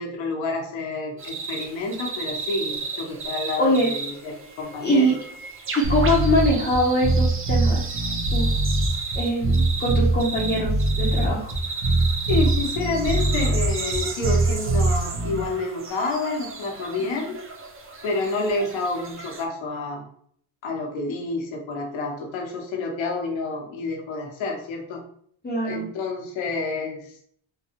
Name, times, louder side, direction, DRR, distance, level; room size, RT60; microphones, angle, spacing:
voice 1, 0.0-5.2 12.3-17.4 18.0-20.1 20.6-25.0 25.6-27.1, left 3 dB, 75° left, 1 dB, 1.2 m, -29 dB
sound 1, 1.2-19.5, right 4 dB, 30° right, 0.5 m, -34 dB
voice 2, 3.6-3.9 4.8-5.1 5.7-7.8 8.3-8.5 9.2-11.5 25.4-25.9, equal, 20° left, -5 dB, 0.9 m, -22 dB
sound 2, 5.8-15.4, right 2 dB, 55° right, 1.3 m, -22 dB
3.9 x 2.3 x 2.9 m, 0.62 s
cardioid pair, 100°, 48 cm